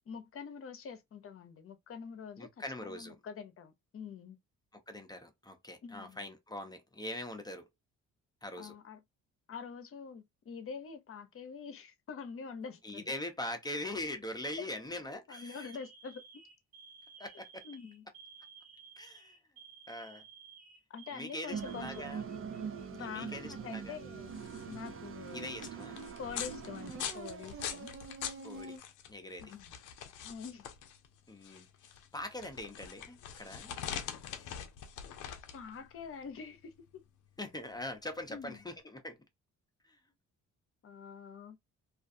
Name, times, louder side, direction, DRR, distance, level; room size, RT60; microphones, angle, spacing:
voice 1, 0.1-2.5 2.8-4.4 5.8-6.3 8.6-9.0 9.5-13.1 15.0-16.4 17.6-18.0 20.9-22.0 22.9-24.3 24.7-25.5 25.8-25.9 26.2-27.9 29.4-29.7 30.2-30.7 35.5-37.0 38.3-38.6 40.8-41.6, left 6 dB, 45° left, 0.7 m, -45 dB
voice 2, 2.4-3.2 4.7-7.7 8.4-8.7 12.8-15.7 17.2-17.6 19.0-19.4 19.9-20.2 21.1-22.2 22.9-23.9 25.3-26.0 28.4-28.8 29.1-29.5 31.3-31.7 32.1-33.7 37.4-39.2, left 1 dB, 15° left, 0.6 m, -42 dB
Alarm, 12.4-12.9 13.8-14.1 14.6-14.7 15.3-22.9 23.2-23.3 24.2-24.9, right 6 dB, 30° right, 1.0 m, -56 dB
sound 1, 21.5-28.8, right 6 dB, 45° right, 0.5 m, -43 dB
sound 2, 24.2-38.7, left 9 dB, 85° left, 0.5 m, -44 dB
2.5 x 2.3 x 2.6 m
cardioid pair, 90°, 30 cm